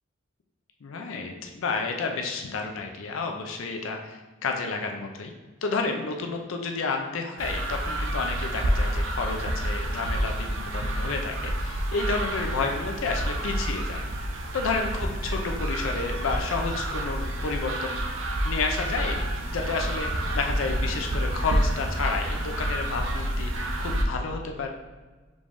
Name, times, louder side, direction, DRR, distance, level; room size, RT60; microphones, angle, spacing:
voice 1, 0.8-5.3 5.6-14.0 14.5-18.0 18.4-19.3 19.5-24.7, left 4 dB, 75° left, 3 dB, 0.5 m, -31 dB
sound 1, 7.4-24.0, right 1 dB, 65° right, 0.6 m, -29 dB
5.1 x 3.4 x 2.5 m, 1.3 s
head